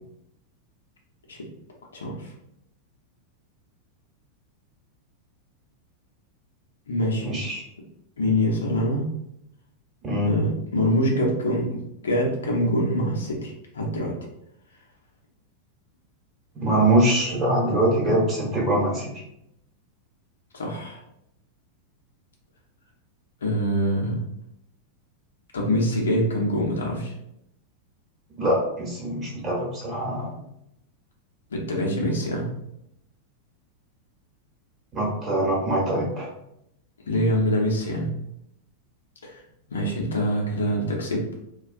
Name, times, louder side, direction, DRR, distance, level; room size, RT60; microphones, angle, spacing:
voice 1, 1.9-2.3 6.9-7.4 8.2-9.1 10.2-11.7 12.0-14.1 20.5-21.0 23.4-24.2 25.5-27.1 31.5-32.5 37.0-38.1 39.2-39.4 39.7-41.2, equal, 70° left, -1 dB, 0.6 m, -24 dB
voice 2, 7.2-7.6 10.0-10.4 16.5-19.1 28.4-30.3 34.9-36.3, right 1 dB, 25° right, -4 dB, 1.0 m, -23 dB
2.3 x 2.2 x 2.5 m, 0.79 s
figure-of-eight pair, 90°, 0 cm